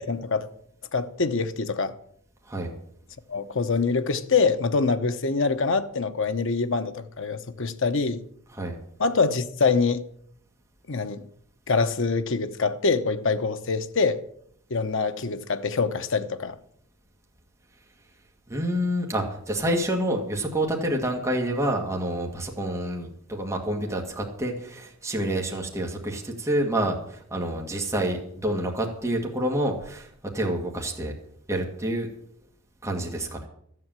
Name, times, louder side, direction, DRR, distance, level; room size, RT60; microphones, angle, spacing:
voice 1, 0.1-0.5 0.9-1.9 3.3-8.2 9.0-10.0 10.9-11.3 11.7-14.2 14.7-16.5, left 4 dB, 65° left, 0.9 m, -25 dB
voice 2, 18.5-30.1 30.3-31.2 31.5-32.1 32.8-33.5, right 1 dB, 15° right, 1.8 m, -28 dB
13.5 x 7.8 x 7.5 m
head